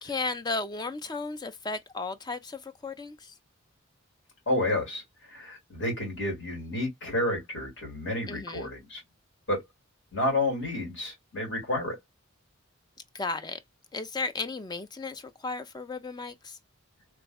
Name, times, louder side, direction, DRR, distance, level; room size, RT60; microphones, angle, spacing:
voice 1, 0.0-3.3 8.3-8.7 13.1-13.6 13.9-16.6, left 3 dB, 20° left, 0.3 m, -34 dB
voice 2, 4.5-9.0 9.5-9.6 10.1-12.0, left 1 dB, 60° left, 2.3 m, -30 dB
3.4 x 3.1 x 2.2 m
head